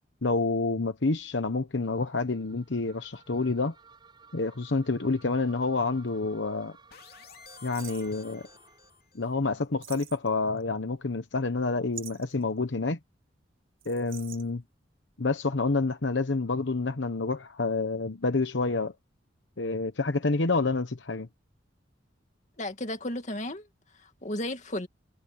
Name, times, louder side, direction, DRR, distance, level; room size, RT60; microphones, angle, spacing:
voice 1, 0.2-3.7 4.3-6.8 7.6-8.4 9.1-13.0 13.9-14.6 15.2-18.9 19.6-21.3, left 3 dB, 75° left, 1.0 m, -28 dB
sound 1, 1.8-9.1, right 4 dB, 25° right, 7.8 m, -57 dB
sound 2, 2.1-2.2 3.1-5.8 6.1-6.2 7.7-8.2 9.8-10.6 11.9-12.4 13.8-14.5, right 10 dB, 50° right, 1.7 m, -46 dB
sound 3, 6.9-9.3, left 6 dB, 55° left, 3.1 m, -52 dB
voice 2, 22.6-23.7 24.0-24.9, left 1 dB, 40° left, 2.4 m, -34 dB
head